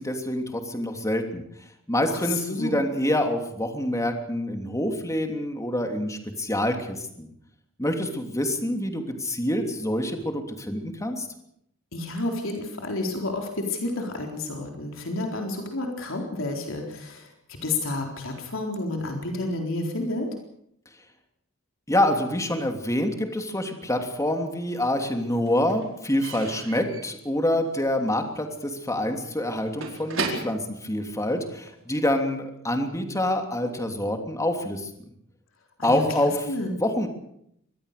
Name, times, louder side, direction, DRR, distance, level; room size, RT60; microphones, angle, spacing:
voice 1, 0.0-1.4 1.9-7.3 7.8-11.3 21.9-34.9 35.8-36.3 36.8-37.1, left 1 dB, 15° left, 5 dB, 3.0 m, -26 dB
voice 2, 2.1-2.8 11.9-17.3 17.6-20.3 35.8-36.7, left 2 dB, 70° left, 2 dB, 4.1 m, -30 dB
Slam / Squeak / Wood, 24.0-24.8 25.0-31.8, right 4 dB, 70° right, 4.6 m, -37 dB
25.0 x 19.5 x 6.8 m, 0.74 s
head